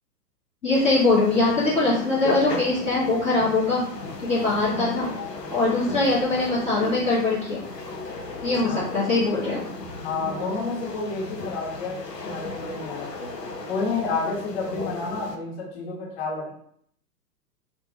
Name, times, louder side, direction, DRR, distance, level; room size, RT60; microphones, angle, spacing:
voice 1, 0.6-3.8 4.2-5.1 5.5-7.6 8.4-9.6, left 2 dB, 15° left, -11 dB, 0.9 m, -22 dB
sound 1, 0.7-15.4, left 3 dB, 85° left, 0.7 m, -34 dB
voice 2, 10.0-13.3 13.7-16.5, left 3 dB, 40° left, -5 dB, 1.5 m, -30 dB
3.0 x 2.2 x 3.0 m, 0.67 s
figure-of-eight pair, 110°, 48 cm